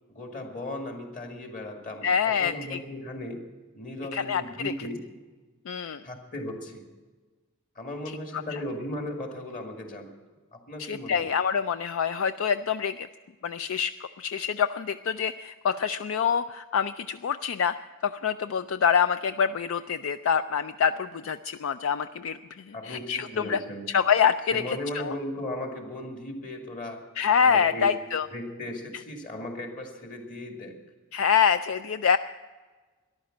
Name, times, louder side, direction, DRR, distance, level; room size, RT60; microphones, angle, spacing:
voice 1, 0.1-3.4 3.7-5.0 6.0-6.9 7.8-10.1 10.5-11.2 22.7-23.9 24.5-27.1 27.4-28.0 28.3-30.8, left 1 dB, 40° left, 3 dB, 2.2 m, -37 dB
voice 2, 2.0-2.8 4.1-4.7 5.7-6.0 8.3-8.6 10.8-13.1 13.4-17.8 18.0-22.4 22.7-23.6 23.9-25.1 27.2-28.3 31.1-32.2, left 7 dB, 65° left, 12 dB, 0.4 m, -26 dB
14.0 x 11.5 x 7.7 m, 1.3 s
head